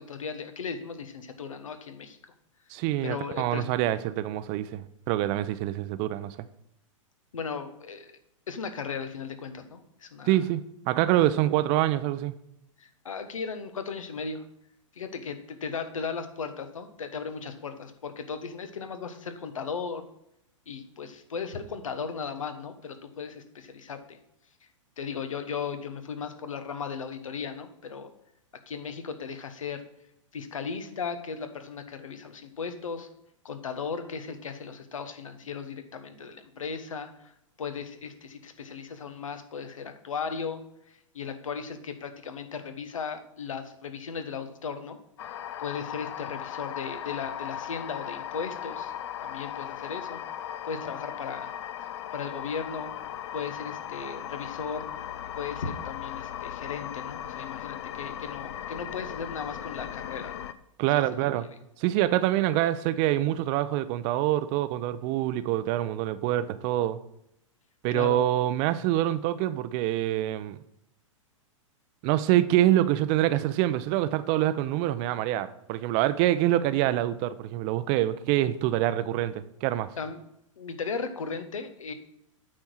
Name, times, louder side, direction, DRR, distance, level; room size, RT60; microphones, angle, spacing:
voice 1, 0.0-2.2 3.0-3.6 7.3-8.2 8.5-10.4 12.8-14.4 14.9-20.1 20.7-24.2 25.0-28.1 28.7-29.8 30.3-33.1 33.4-37.3 37.6-40.6 40.9-45.0 45.6-48.9 49.2-50.2 50.7-51.5 52.1-52.9 53.3-54.8 55.3-60.5 60.9-61.2 67.9-68.2 80.0-80.2 80.6-81.9, left 5 dB, 80° left, 9 dB, 1.1 m, -36 dB
voice 2, 2.7-6.3 10.3-12.3 60.8-61.4 61.8-67.0 67.8-70.6 72.0-79.9, right 13 dB, 40° right, 14 dB, 0.6 m, -25 dB
sound 1, 45.2-60.5, left 10 dB, 60° left, 0.5 m, -37 dB
8.9 x 4.5 x 6.1 m, 0.79 s
hypercardioid pair, 110°, 17 cm